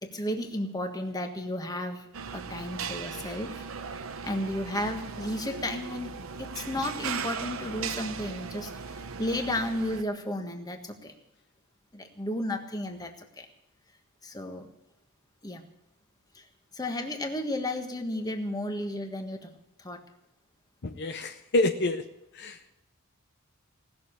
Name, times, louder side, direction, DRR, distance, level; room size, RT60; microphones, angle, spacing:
voice 1, 0.0-2.1 2.3-3.6 4.2-6.1 6.4-11.1 11.9-13.5 14.2-14.7 15.4-15.6 16.3-16.4 16.7-19.5 19.8-20.0, left 1 dB, 20° left, 5 dB, 1.5 m, -33 dB
sound 1, 2.1-10.0, right 6 dB, 70° right, 0.8 m, -38 dB
voice 2, 20.8-22.0 22.4-22.7, left 2 dB, 55° left, 7 dB, 0.7 m, -28 dB
18.5 x 7.0 x 9.8 m, 0.85 s
head